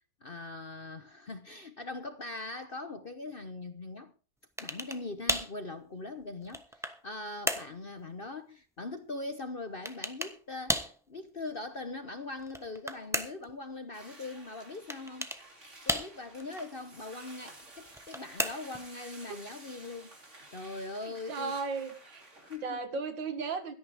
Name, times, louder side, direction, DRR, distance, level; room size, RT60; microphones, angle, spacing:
voice 1, 0.0-4.1 4.6-15.3 15.9-20.1 20.5-21.6 22.4-22.8, left 2 dB, 40° left, 0.9 m, -41 dB
sound 1, 4.6-5.0 5.3-5.6 6.2-7.0 7.5-7.8 9.9-10.4 10.7-11.0 12.4-13.5 14.9-15.4 15.9-16.4 17.9-18.8, equal, ahead, 0.8 m, -33 dB
sound 2, 13.9-22.6, right 2 dB, 40° right, 3.4 m, -52 dB
voice 2, 21.0-22.2 22.6-23.7, right 4 dB, 80° right, 2.4 m, -35 dB
17.0 x 13.0 x 3.5 m
omnidirectional pair, 2.0 m